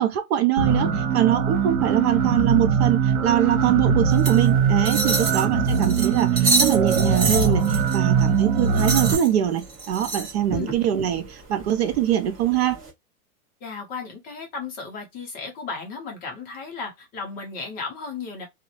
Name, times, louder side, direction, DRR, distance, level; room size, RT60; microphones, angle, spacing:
voice 1, 0.0-12.8, right 11 dB, 45° right, 0.4 m, -23 dB
sound 1, 0.6-9.2, right 6 dB, 70° right, 1.1 m, -21 dB
sound 2, 4.1-12.9, right 3 dB, 20° right, 0.8 m, -29 dB
voice 2, 13.6-18.5, left 4 dB, 20° left, 0.5 m, -35 dB
2.4 x 2.0 x 2.8 m
hypercardioid pair, 135°, 46 cm